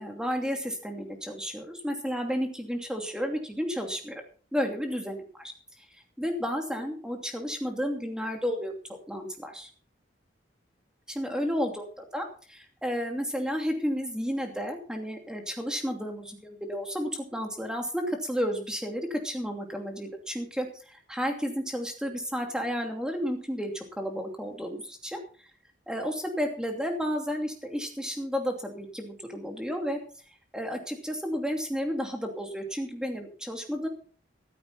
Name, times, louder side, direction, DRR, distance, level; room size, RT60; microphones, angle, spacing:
voice 1, 0.0-4.2 4.5-5.5 5.8-5.9 6.2-8.7 9.1-9.7 11.1-11.8 12.1-25.2 25.9-30.0 30.5-33.9, equal, 5° right, 3 dB, 2.7 m, -32 dB
14.5 x 13.0 x 4.2 m, 0.40 s
head